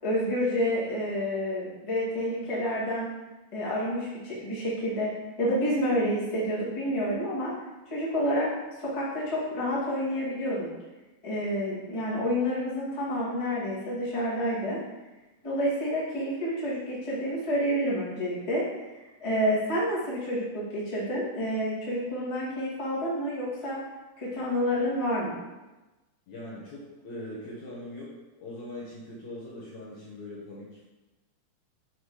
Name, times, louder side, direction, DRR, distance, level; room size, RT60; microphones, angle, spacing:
voice 1, 0.0-3.1 3.5-7.5 7.9-8.5 8.8-10.7 11.2-14.8 15.4-18.6 19.2-23.8 24.2-25.4, equal, 20° left, -8 dB, 0.9 m, -29 dB
voice 2, 26.3-28.1 28.4-30.8, left 1 dB, 60° left, -6 dB, 2.2 m, -41 dB
7.8 x 5.0 x 4.8 m, 1.1 s
omnidirectional pair, 4.9 m